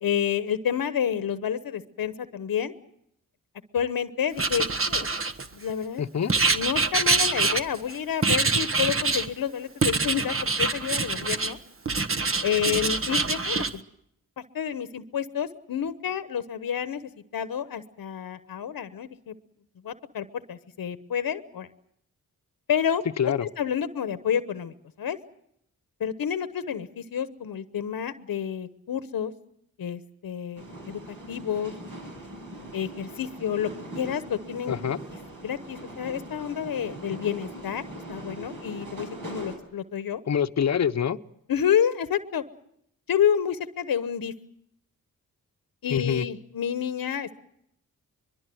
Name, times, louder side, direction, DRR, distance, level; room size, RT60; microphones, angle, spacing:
voice 1, 0.0-2.7 3.7-5.1 5.5-6.0 6.5-11.6 12.4-13.8 14.5-19.3 19.8-21.7 22.7-23.0 23.4-25.2 26.0-29.3 29.8-31.7 32.7-33.7 33.9-34.8 35.4-37.8 38.1-40.2 41.5-42.4 43.1-44.3 45.8-47.4, left 8 dB, 70° left, 12 dB, 1.1 m, -29 dB
Writing, 4.4-5.7 6.3-7.9 8.2-9.3 9.8-11.5 11.9-13.7, right 4 dB, 35° right, 1.3 m, -25 dB
voice 2, 6.0-6.3 23.2-23.5 34.7-35.0 40.3-41.2 45.9-46.2, left 8 dB, 50° left, 10 dB, 0.9 m, -25 dB
sound 1, 30.6-39.6, right 1 dB, 60° right, 7.0 m, -41 dB
23.0 x 22.5 x 7.7 m, 0.74 s
cardioid pair, 60°, 36 cm